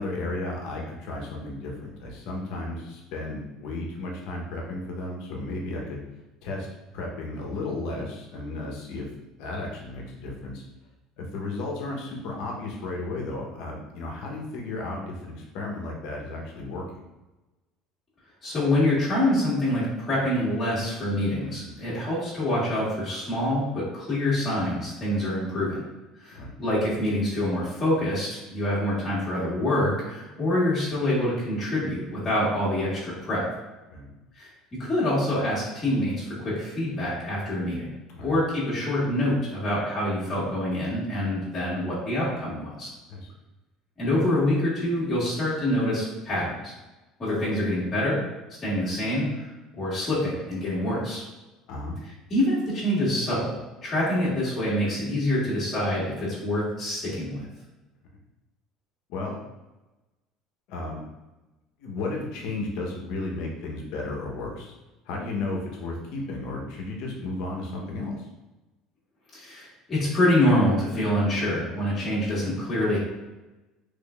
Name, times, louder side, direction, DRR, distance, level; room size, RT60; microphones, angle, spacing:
voice 1, 0.0-6.1 6.4-6.7 6.9-9.1 9.4-10.6 11.2-17.0 21.6-21.9 26.3-26.6 33.9-34.1 38.1-38.4 43.1-43.3 51.7-52.0 59.1-59.4 60.7-61.0 61.8-64.7 65.0-68.3, left 2 dB, 70° left, 0 dB, 0.9 m, -34 dB
voice 2, 18.4-25.8 26.2-33.4 34.4-37.9 38.2-42.9 44.0-46.7 47.2-48.2 48.6-49.5 49.7-51.2 52.3-53.5 53.8-57.5 69.3-73.0, left 1 dB, 25° left, -9 dB, 1.5 m, -26 dB
3.6 x 3.3 x 2.4 m, 1.1 s
cardioid pair, 140°, 0 cm